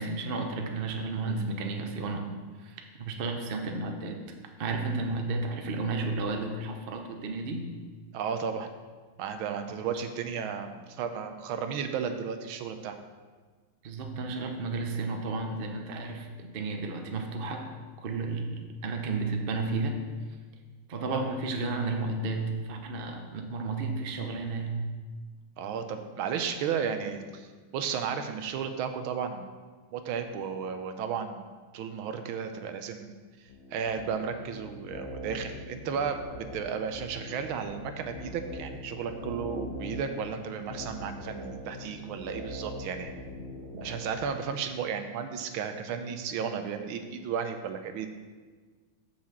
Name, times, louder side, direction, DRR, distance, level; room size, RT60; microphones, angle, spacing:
voice 1, 0.0-2.3 2.6-4.2 4.6-7.6 9.9-10.0 13.8-17.7 18.0-20.0 20.9-24.8 43.7-43.8, right 3 dB, 55° right, 4 dB, 0.6 m, -32 dB
voice 2, 8.1-8.7 9.2-13.0 25.6-27.5 27.7-29.5 29.9-31.4 31.7-33.2 33.7-43.1 43.8-48.1, right 6 dB, 80° right, 7 dB, 1.5 m, -34 dB
sound 1, 33.5-44.3, left 1 dB, 60° left, 0.7 m, -42 dB
6.4 x 5.9 x 7.1 m, 1.4 s
omnidirectional pair, 2.3 m